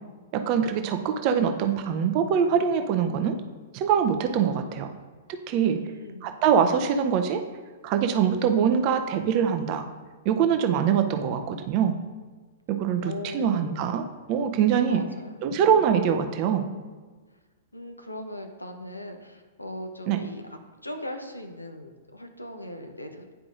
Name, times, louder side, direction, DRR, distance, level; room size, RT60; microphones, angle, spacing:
voice 1, 0.3-3.4 3.7-4.9 5.5-5.8 6.2-7.4 7.8-9.8 10.2-12.0 12.7-15.0 15.4-16.6 20.1-20.2, right 7 dB, 35° right, 7 dB, 0.5 m, -23 dB
voice 2, 5.6-6.3 13.0-13.8 14.7-15.3 17.7-23.4, left 1 dB, 85° left, 5 dB, 0.8 m, -39 dB
10.0 x 4.7 x 2.5 m, 1.4 s
figure-of-eight pair, 105°, 0 cm